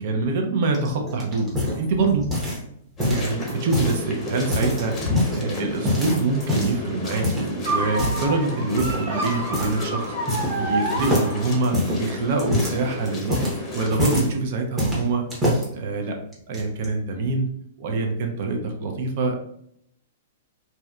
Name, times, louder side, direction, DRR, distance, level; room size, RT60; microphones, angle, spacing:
voice 1, 0.0-2.3 3.0-4.9 5.3-10.1 10.6-13.4 13.7-15.2 15.7-16.1 16.5-17.5 17.8-19.5, right 3 dB, 55° right, 3 dB, 0.5 m, -25 dB
sound 1, 0.7-2.7 3.0-4.0 4.4-5.4 5.8-6.8 7.2-7.5 7.9-8.3 8.8-9.1 9.5-9.8 10.0-10.7 11.0-14.3 14.8-15.7 16.3-16.9, left 1 dB, 15° right, 0.9 m, -25 dB
sound 2, 3.0-13.9, left 1 dB, 20° left, 0.7 m, -33 dB
sound 3, 7.6-11.8, right 2 dB, 70° right, 1.2 m, -29 dB
2.7 x 2.1 x 2.3 m, 0.71 s
hypercardioid pair, 145°, 0 cm